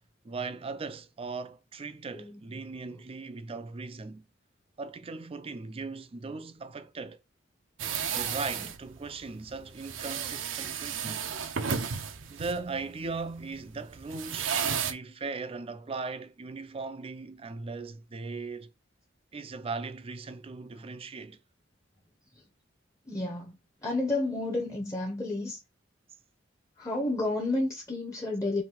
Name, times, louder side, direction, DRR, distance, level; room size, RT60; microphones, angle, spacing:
voice 1, 0.2-4.2 4.8-7.2 8.1-11.3 12.3-18.7 19.3-21.4, right 4 dB, 30° right, 0.4 m, -38 dB
voice 2, 2.1-2.4 8.6-8.7 11.9-12.0 22.3-22.4 23.1-25.6 26.8-28.6, left 2 dB, 15° left, 0.8 m, -31 dB
sound 1, 7.8-14.9, right 7 dB, 90° right, 0.6 m, -33 dB
3.9 x 2.7 x 4.4 m
head